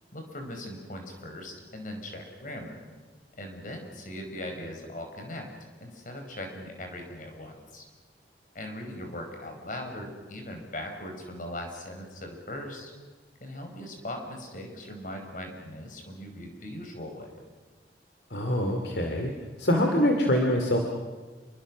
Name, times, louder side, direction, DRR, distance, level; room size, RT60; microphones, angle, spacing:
voice 1, 0.1-2.8 3.4-5.5 5.8-7.8 8.5-12.9 13.4-17.4, left 1 dB, 50° left, 3 dB, 5.1 m, -39 dB
voice 2, 18.3-19.3 19.6-20.9, left 1 dB, 70° left, 2 dB, 2.6 m, -24 dB
27.5 x 23.5 x 6.3 m, 1.3 s
head